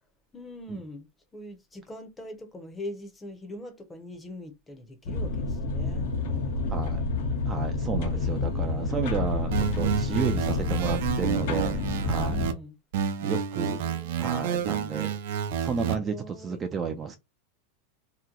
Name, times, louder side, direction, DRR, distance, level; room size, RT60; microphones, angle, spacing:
voice 1, 0.3-1.1 1.3-7.0 8.1-9.5 12.3-12.7 13.6-14.4 15.9-16.6, left 1 dB, 10° left, 0.7 m, -42 dB
sound 1, 5.1-12.5, left 3 dB, 70° left, 0.9 m, -29 dB
voice 2, 6.7-7.0 7.5-12.4 13.2-13.8 14.2-15.2 15.6-17.2, right 5 dB, 20° right, 0.4 m, -32 dB
sound 2, 9.5-12.5 12.9-15.9, right 8 dB, 70° right, 0.6 m, -29 dB
2.9 x 2.1 x 3.8 m
supercardioid pair, 145°, 0 cm